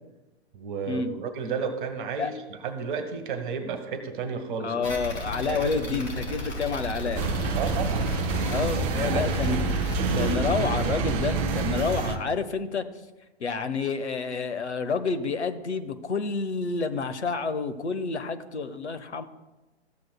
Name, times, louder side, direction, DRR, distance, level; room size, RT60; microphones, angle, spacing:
voice 1, 0.5-2.3 2.6-4.7 5.5-6.0 7.5-8.1 8.9-9.8 10.1-10.9, right 5 dB, 50° right, 8 dB, 1.3 m, -33 dB
voice 2, 4.6-7.2 8.5-9.6 10.2-12.9 13.4-19.2, left 4 dB, 90° left, 10 dB, 0.8 m, -29 dB
sound 1, 4.8-10.3, equal, 70° left, 3.0 m, -33 dB
sound 2, 7.1-12.2, right 3 dB, 15° right, 0.3 m, -27 dB
14.0 x 7.7 x 2.3 m, 1.1 s
hypercardioid pair, 120°, 33 cm